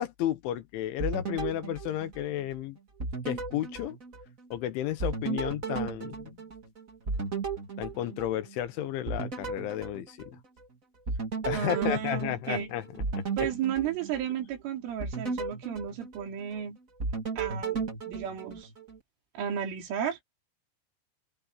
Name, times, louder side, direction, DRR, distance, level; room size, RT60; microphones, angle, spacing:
voice 1, 0.0-2.8 3.3-4.0 4.5-6.3 7.8-10.4 11.4-12.8, left 12 dB, 75° left, 3.6 m, -32 dB
sound 1, 1.0-2.6 3.0-4.6 5.0-8.7 9.1-10.7 11.1-14.5 15.0-16.6 17.0-19.0, right 4 dB, 30° right, 1.7 m, -35 dB
voice 2, 11.5-12.7 13.4-16.8 17.4-18.7 19.4-20.2, right 8 dB, 80° right, 5.8 m, -33 dB
open air
omnidirectional pair, 5.6 m